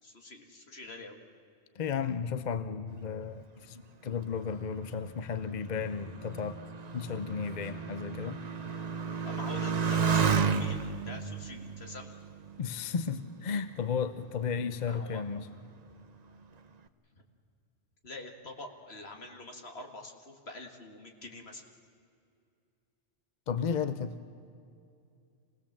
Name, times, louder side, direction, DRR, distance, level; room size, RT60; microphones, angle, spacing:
voice 1, 0.0-1.2 9.2-12.2 14.9-15.2 17.1-17.2 18.0-21.6, left 2 dB, 65° left, 3 dB, 2.1 m, -46 dB
voice 2, 1.8-6.6 6.9-8.4 12.6-15.5 23.5-24.1, left 6 dB, 45° left, 11 dB, 0.7 m, -34 dB
Motorcycle, 4.3-13.3 14.0-14.6, right 6 dB, 40° right, 0.8 m, -33 dB
26.5 x 18.5 x 7.3 m, 2.5 s
omnidirectional pair, 1.2 m